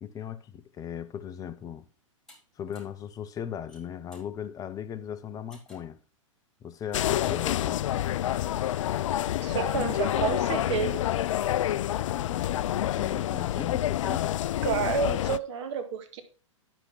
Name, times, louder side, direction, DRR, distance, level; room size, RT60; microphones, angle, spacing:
voice 1, 0.0-1.9 2.6-6.0 6.6-7.9 12.1-14.3, left 8 dB, 20° left, 0.8 m, -38 dB
sound 1, 2.3-2.4 2.7-3.0 3.5-4.3 5.5-5.9 6.8-7.4, left 1 dB, ahead, 4.9 m, -55 dB
sound 2, 6.9-15.4, left 12 dB, 70° left, 0.4 m, -28 dB
voice 2, 9.4-11.1 14.6-16.2, right 6 dB, 60° right, 2.0 m, -30 dB
9.8 x 6.1 x 5.8 m
hypercardioid pair, 120°, 17 cm